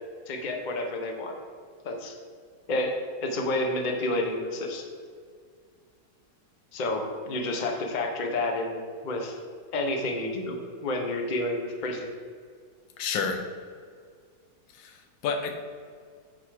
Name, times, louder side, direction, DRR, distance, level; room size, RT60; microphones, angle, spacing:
voice 1, 0.3-1.3 1.8-2.2 2.7-2.9 3.2-4.8 6.7-9.4 9.7-12.1, left 2 dB, 35° left, 3 dB, 0.8 m, -30 dB
voice 2, 13.0-13.5 14.7-15.6, left 5 dB, 85° left, 5 dB, 1.5 m, -30 dB
9.2 x 4.5 x 4.9 m, 2.1 s
omnidirectional pair, 1.9 m